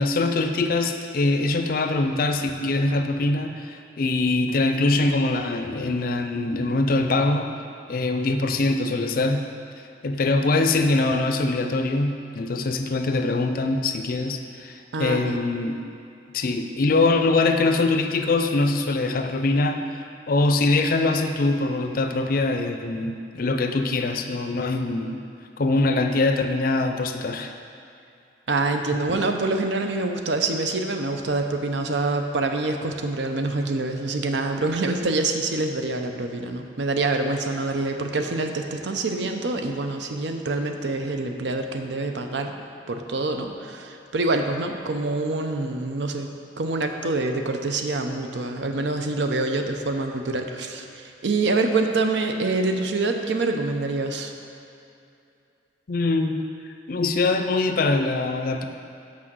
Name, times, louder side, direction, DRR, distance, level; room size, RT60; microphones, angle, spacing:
voice 1, 0.0-7.5 7.9-9.5 10.0-15.8 16.3-19.8 20.3-25.2 25.6-27.5 29.1-29.2 55.9-56.4 56.9-58.6, left 2 dB, 50° left, 6 dB, 0.5 m, -23 dB
voice 2, 14.9-15.4 28.5-42.5 42.9-46.3 46.6-54.3, right 2 dB, 70° right, 5 dB, 0.6 m, -26 dB
6.1 x 5.6 x 6.1 m, 2.6 s
head